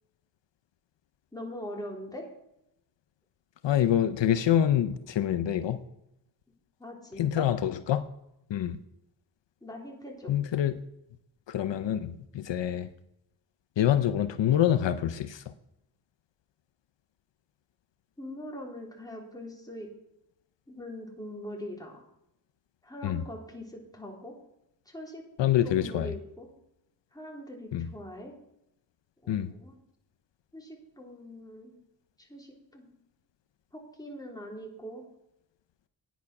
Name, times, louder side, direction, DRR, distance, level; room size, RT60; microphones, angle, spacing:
voice 1, 1.3-2.2 6.8-7.5 9.6-10.3 18.2-19.9 20.7-22.0 22.8-24.3 24.9-25.2 25.6-26.5 27.1-28.3 29.2-29.8 30.5-31.8 32.2-32.9 33.7-35.0, left 1 dB, 10° left, 0 dB, 3.2 m, -42 dB
voice 2, 3.6-5.8 7.2-8.0 8.5-8.8 10.3-10.8 11.5-12.9 13.8-15.4 23.0-23.2 25.4-26.1 27.7-27.9 29.3-29.5, left 10 dB, 80° left, 11 dB, 0.7 m, -26 dB
9.5 x 9.2 x 5.9 m, 0.84 s
cardioid pair, 70°, 43 cm